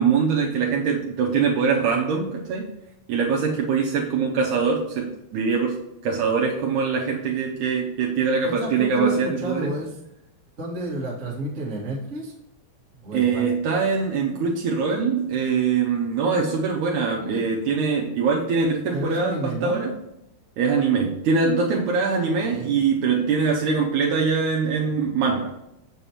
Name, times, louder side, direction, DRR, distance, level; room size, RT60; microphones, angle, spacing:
voice 1, 0.0-2.7 3.1-9.7 13.1-19.9 20.6-25.6, right 5 dB, 75° right, -2 dB, 1.9 m, -23 dB
voice 2, 8.4-10.0 10.6-12.3 13.0-13.5 17.1-17.5 18.9-19.8 22.5-22.8, right 1 dB, 35° right, -5 dB, 1.2 m, -31 dB
7.0 x 7.0 x 2.9 m, 0.84 s
omnidirectional pair, 4.0 m